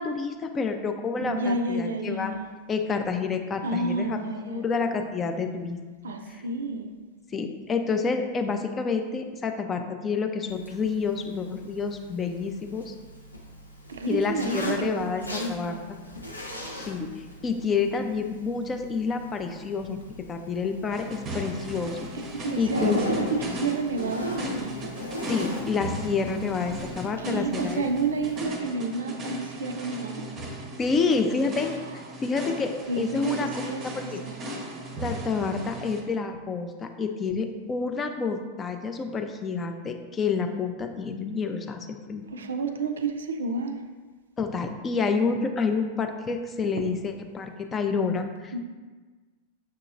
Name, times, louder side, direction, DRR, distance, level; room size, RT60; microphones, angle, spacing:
voice 1, 0.0-2.3 2.7-4.2 4.5-5.8 7.3-12.9 14.1-15.7 16.8-20.0 20.3-22.0 22.6-23.1 25.3-27.8 30.8-33.5 34.1-34.2 35.0-42.2 44.4-48.5, left 4 dB, 20° left, 5 dB, 0.4 m, -28 dB
voice 2, 1.2-2.5 3.6-4.7 6.0-6.9 13.9-15.9 22.1-24.9 27.2-30.3 31.8-32.0 32.9-34.4 42.3-43.8 46.8-46.9 48.5-48.6, right 3 dB, 65° right, 5 dB, 0.4 m, -30 dB
Zipper (clothing), 10.5-28.4, left 1 dB, 85° left, 0.5 m, -38 dB
sound 1, 20.9-36.0, equal, 25° right, 0.7 m, -37 dB
6.3 x 2.8 x 2.5 m, 1.3 s
figure-of-eight pair, 90°, 0 cm